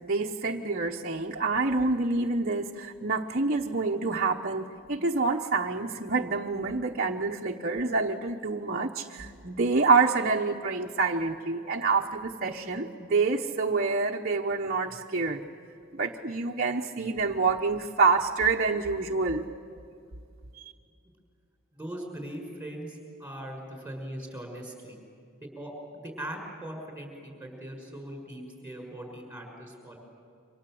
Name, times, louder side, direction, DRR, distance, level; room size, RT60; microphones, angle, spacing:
voice 1, 0.0-15.4 15.9-19.5 20.5-20.7, right 4 dB, 40° right, 0 dB, 1.1 m, -27 dB
voice 2, 21.7-25.0 25.4-30.0, right 1 dB, 5° right, 1 dB, 6.2 m, -40 dB
28.5 x 25.5 x 7.8 m, 2.4 s
head